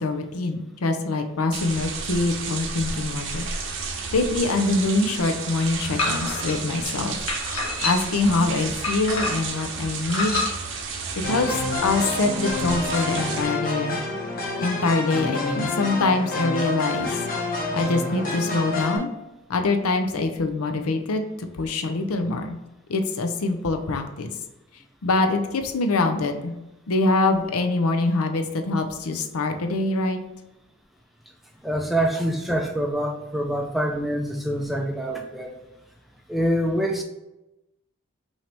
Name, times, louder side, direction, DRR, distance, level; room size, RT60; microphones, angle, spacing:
voice 1, 0.0-3.4 4.1-7.2 7.8-10.4 11.2-14.0 14.6-17.2 17.7-19.1 19.5-22.6 22.9-24.3 25.0-26.5 26.9-30.2, left 3 dB, 85° left, 6 dB, 0.6 m, -24 dB
sound 1, 1.5-13.4, right 4 dB, 55° right, 0.7 m, -32 dB
sound 2, 6.0-6.6 7.3-8.2 8.8-9.6 10.1-10.5, left 3 dB, 70° left, 1.3 m, -27 dB
sound 3, 11.2-19.0, left 3 dB, 40° left, 0.9 m, -28 dB
voice 2, 31.6-35.5 36.3-37.0, equal, ahead, 1 dB, 0.4 m, -25 dB
5.6 x 2.8 x 3.4 m, 0.97 s
head